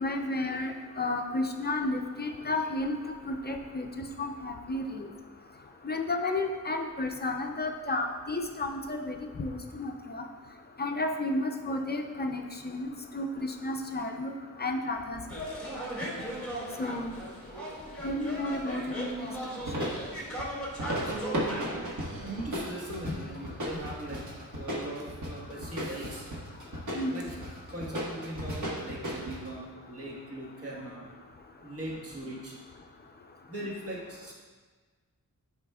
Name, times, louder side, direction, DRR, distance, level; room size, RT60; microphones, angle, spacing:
voice 1, 0.0-3.0 3.3-5.1 5.8-10.2 10.8-14.3 14.6-15.2 16.8-17.2 18.0-19.3 26.9-27.2, left 2 dB, 30° left, 3 dB, 0.5 m, -32 dB
sound 1, 15.3-22.6, right 1 dB, 5° left, 1.9 m, -38 dB
sound 2, 19.7-20.0 20.4-20.5 20.8-29.5, equal, 60° right, 1.4 m, -35 dB
voice 2, 21.0-21.8 22.1-24.2 24.6-26.2 27.1-27.3 27.7-31.1 31.6-32.6 33.5-34.3, right 1 dB, 45° right, -4 dB, 1.4 m, -40 dB
10.5 x 5.0 x 2.3 m, 1.4 s
wide cardioid pair, 130°, 33 cm